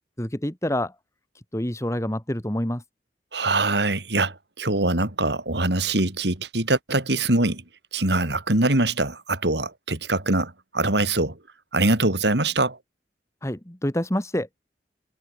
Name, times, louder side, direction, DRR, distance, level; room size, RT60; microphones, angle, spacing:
voice 1, 0.2-1.0 1.5-2.8 13.4-14.5, left 1 dB, 15° left, 1.7 m, -27 dB
voice 2, 3.3-7.6 7.9-11.4 11.7-12.8, right 2 dB, 75° right, 3.4 m, -23 dB
head